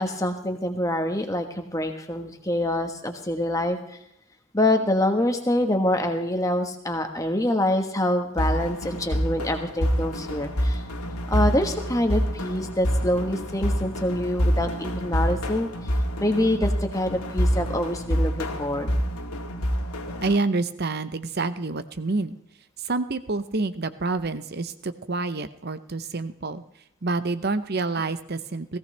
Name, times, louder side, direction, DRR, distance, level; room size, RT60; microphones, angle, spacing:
voice 1, 0.0-4.0 4.5-10.9 11.3-15.9 16.2-18.9 20.1-20.2, left 1 dB, 15° left, 6 dB, 1.3 m, -25 dB
sound 1, 8.4-20.4, equal, 85° left, 2.1 m, -27 dB
voice 2, 20.2-22.4 22.8-26.6 27.0-28.8, right 3 dB, 45° right, 12 dB, 0.8 m, -28 dB
18.0 x 16.0 x 3.4 m, 0.77 s
head